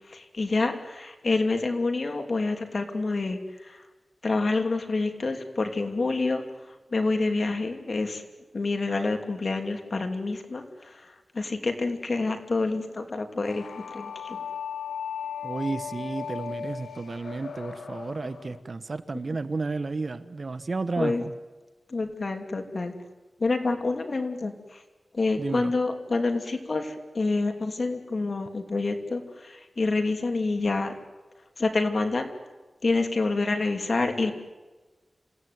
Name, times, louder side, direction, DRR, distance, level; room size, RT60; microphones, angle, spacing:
voice 1, 0.1-3.8 4.2-6.4 6.9-8.2 8.5-14.4 21.0-21.2 21.9-23.0 23.4-24.8 25.1-30.9 31.6-32.3 32.8-34.3, left 3 dB, 60° left, 6 dB, 2.9 m, -27 dB
sound 1, 13.5-18.6, left 7 dB, 80° left, 1.2 m, -37 dB
voice 2, 15.4-21.3 25.4-25.7, right 3 dB, 55° right, 12 dB, 1.2 m, -32 dB
28.0 x 16.5 x 9.6 m, 1.2 s
wide cardioid pair, 60°, 0 cm